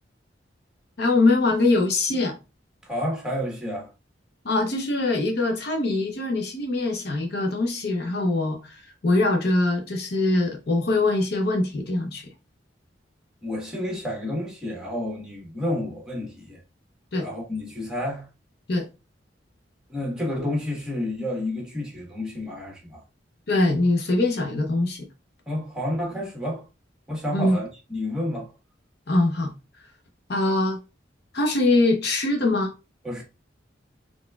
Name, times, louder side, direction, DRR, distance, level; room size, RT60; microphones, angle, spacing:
voice 1, 1.0-2.3 4.4-12.3 17.1-17.3 18.7-18.9 23.5-25.1 27.3-27.6 29.1-29.5 30.3-30.8 31.3-32.7, left 2 dB, 60° left, 0.7 m, -23 dB
voice 2, 2.9-3.9 13.4-16.6 17.2-18.2 19.9-23.0 25.5-26.6 27.1-28.5 33.0-33.2, left 1 dB, 5° right, 1.3 m, -30 dB
4.1 x 3.5 x 2.3 m
head